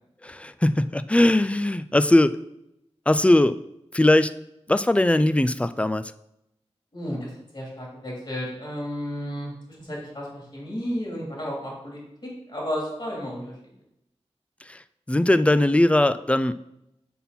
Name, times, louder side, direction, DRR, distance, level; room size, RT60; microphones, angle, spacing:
voice 1, 0.2-2.3 3.1-3.6 3.9-4.3 4.7-6.1 14.7-14.8 15.1-16.5, left 1 dB, 10° left, 14 dB, 0.3 m, -20 dB
voice 2, 6.9-13.5, equal, 45° left, -3 dB, 2.8 m, -33 dB
5.5 x 4.2 x 5.9 m, 0.82 s
wide cardioid pair, 60°, 11 cm